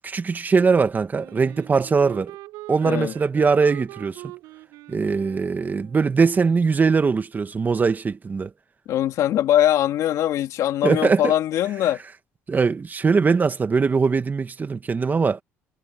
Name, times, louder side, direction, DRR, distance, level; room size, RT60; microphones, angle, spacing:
voice 1, 0.0-2.3 2.7-4.2 4.9-8.5 10.8-11.3 12.5-15.4, right 5 dB, 30° right, 1.7 m, -21 dB
Wind instrument woodwind instrument, 1.2-6.2, right 19 dB, 90° right, 5.0 m, -42 dB
voice 2, 2.8-3.1 8.9-12.0, left 12 dB, 70° left, 2.8 m, -21 dB
supercardioid pair, 85°, 6 cm